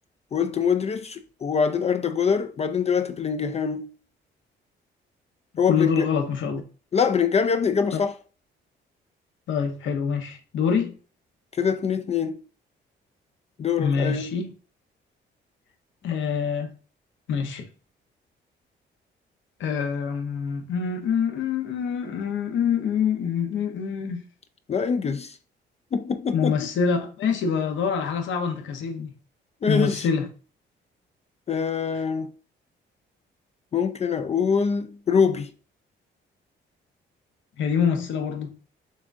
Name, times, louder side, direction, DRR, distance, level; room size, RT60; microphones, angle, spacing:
voice 1, 0.3-3.9 5.6-6.1 6.9-8.1 11.5-12.4 13.6-14.4 24.7-25.4 25.9-26.6 29.6-30.1 31.5-32.3 33.7-35.5, left 6 dB, 35° left, 0.4 m, -24 dB
voice 2, 5.7-6.6 9.5-11.0 13.8-14.5 16.0-16.7 17.3-17.7 19.6-24.2 26.3-29.1 29.7-30.3 37.6-38.6, left 6 dB, 75° left, 0.9 m, -25 dB
6.2 x 2.4 x 2.6 m
cardioid pair, 90°, 20 cm